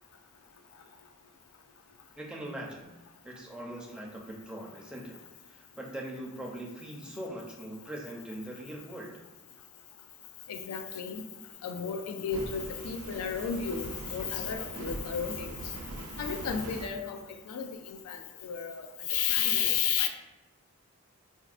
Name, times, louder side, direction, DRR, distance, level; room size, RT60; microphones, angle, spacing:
voice 1, 2.2-2.9 3.2-5.2 5.5-9.2, right 1 dB, 5° right, -3 dB, 0.5 m, -41 dB
voice 2, 10.5-11.2 11.6-15.5 16.2-17.2 17.5-18.8 19.1-20.1, left 7 dB, 85° left, 6 dB, 0.3 m, -32 dB
Fire, 12.3-16.9, right 2 dB, 80° right, 0.4 m, -42 dB
4.3 x 2.1 x 2.4 m, 1.2 s
head